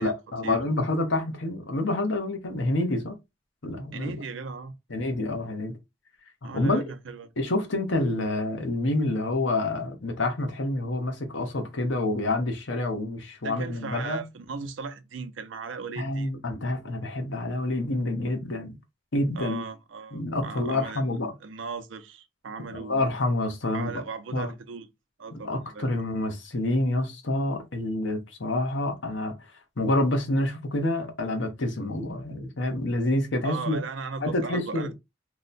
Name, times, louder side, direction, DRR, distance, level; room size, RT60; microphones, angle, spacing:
voice 1, 0.0-3.2 3.6-4.2 4.9-5.8 6.5-6.8 7.4-14.2 16.0-18.8 19.1-19.6 20.1-21.3 22.7-23.9 24.3-24.5 25.3-29.3 29.8-33.8 34.2-34.9, left 2 dB, 85° left, 0.9 m, -28 dB
voice 2, 3.9-4.8 6.4-7.3 13.4-16.3 19.4-23.3 23.7-24.9 25.2-25.9 33.4-34.9, right 5 dB, 90° right, 0.5 m, -37 dB
2.9 x 2.1 x 3.8 m
head